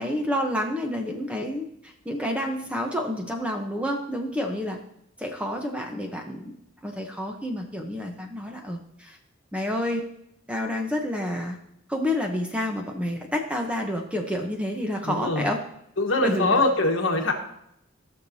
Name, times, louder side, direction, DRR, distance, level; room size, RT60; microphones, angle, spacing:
voice 1, 0.0-4.8 5.2-6.6 6.8-9.2 9.5-10.0 10.5-11.6 11.9-15.6 16.2-16.6, left 1 dB, 5° right, 2 dB, 0.9 m, -29 dB
voice 2, 15.0-15.5 16.0-17.3, left 2 dB, 65° left, 2 dB, 1.4 m, -23 dB
16.0 x 6.5 x 2.8 m, 0.77 s
head